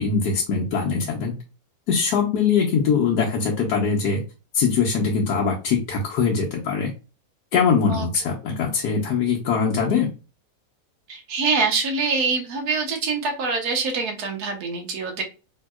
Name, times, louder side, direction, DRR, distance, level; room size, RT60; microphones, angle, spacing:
voice 1, 0.0-1.4 1.9-4.2 4.5-6.9 7.5-10.1, left 5 dB, 90° left, -3 dB, 1.3 m, -22 dB
voice 2, 11.1-15.2, right 4 dB, 70° right, 3 dB, 1.4 m, -25 dB
3.6 x 2.7 x 2.2 m, 0.32 s
omnidirectional pair, 1.7 m